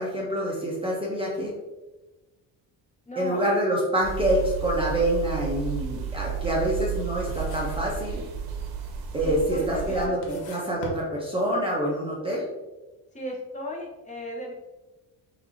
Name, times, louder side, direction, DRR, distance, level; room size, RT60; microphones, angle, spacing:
voice 1, 0.0-1.5 3.2-8.2 9.1-10.2 10.5-12.4, equal, 15° right, -4 dB, 0.7 m, -26 dB
voice 2, 3.1-3.4 9.2-10.4 13.1-14.5, equal, 20° left, -3 dB, 0.9 m, -35 dB
sound 1, 4.0-10.1, right 8 dB, 80° right, 0.8 m, -32 dB
sound 2, 7.3-8.0 8.3-8.9 9.5-9.6 10.0-11.7, left 3 dB, 90° left, 1.0 m, -43 dB
5.8 x 2.6 x 2.7 m, 1.1 s
cardioid pair, 140°, 37 cm